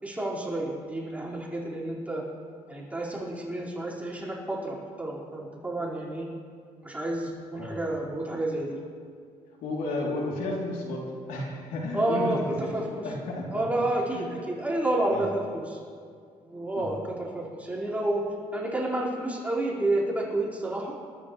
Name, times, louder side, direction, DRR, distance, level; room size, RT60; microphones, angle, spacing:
voice 1, 0.0-2.2 2.7-6.3 6.8-8.8 11.9-13.1 13.5-15.8 16.4-18.2 18.5-20.9, right 1 dB, 10° right, -6 dB, 5.0 m, -30 dB
voice 2, 9.6-12.4 13.0-13.6 14.1-14.4 15.1-15.3 16.7-16.9, left 2 dB, 80° left, -3 dB, 3.4 m, -33 dB
29.0 x 13.0 x 3.3 m, 2.2 s
cardioid pair, 95°, 14 cm